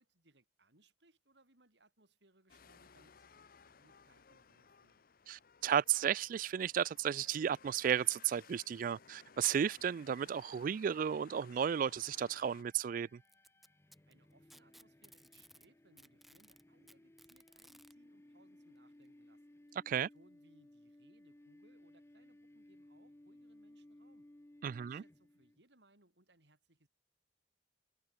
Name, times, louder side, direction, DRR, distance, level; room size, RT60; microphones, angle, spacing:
voice 1, 0.0-5.1 14.1-19.6 20.0-24.3 24.7-26.9, right 2 dB, 75° right, 7.0 m, -70 dB
sound 1, 2.5-12.6, left 6 dB, 55° left, 0.8 m, -61 dB
voice 2, 5.3-13.2 19.9-20.1 24.6-25.0, right 8 dB, 50° right, 0.3 m, -34 dB
sound 2, 11.1-25.6, left 1 dB, 15° left, 0.6 m, -62 dB
Packing tape duct tape, 13.2-15.7 16.0-17.9 19.0-19.1 19.7-19.8 20.6-20.7, equal, ahead, 2.1 m, -61 dB
head